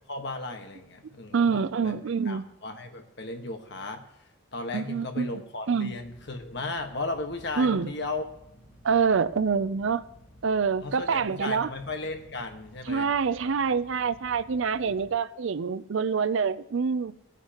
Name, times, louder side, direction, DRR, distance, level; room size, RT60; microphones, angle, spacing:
voice 1, 0.1-1.9 2.2-4.0 4.5-8.3 10.8-13.1 14.8-15.1, left 3 dB, 55° left, 1.4 m, -35 dB
voice 2, 1.3-2.5 4.7-5.3 5.7-5.9 7.6-7.9 8.8-10.0 10.4-11.7 12.9-17.1, right 5 dB, 65° right, 0.4 m, -26 dB
sound 1, 5.9-15.1, equal, 15° left, 1.2 m, -54 dB
19.0 x 9.9 x 2.9 m
head